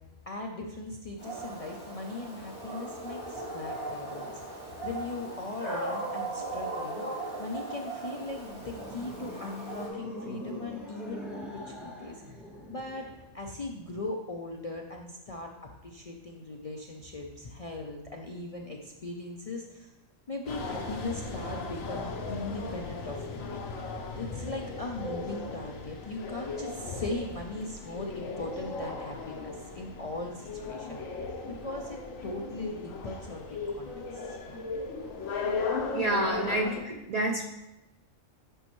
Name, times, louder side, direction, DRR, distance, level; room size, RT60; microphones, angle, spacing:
voice 1, 0.3-7.0 7.4-12.4 12.7-13.1 13.3-19.9 20.3-23.6 24.1-31.0 31.4-34.6, left 2 dB, 50° left, 1 dB, 0.4 m, -39 dB
Dog, 1.2-9.9, right 2 dB, 20° left, 2.9 m, -38 dB
sound 1, 8.2-13.5, left 1 dB, ahead, 1.2 m, -43 dB
sound 2, 20.5-36.8, left 4 dB, 85° left, 1.3 m, -37 dB
voice 2, 35.9-37.4, right 1 dB, 65° right, 3 dB, 0.4 m, -28 dB
9.9 x 5.2 x 3.1 m, 0.99 s
omnidirectional pair, 1.3 m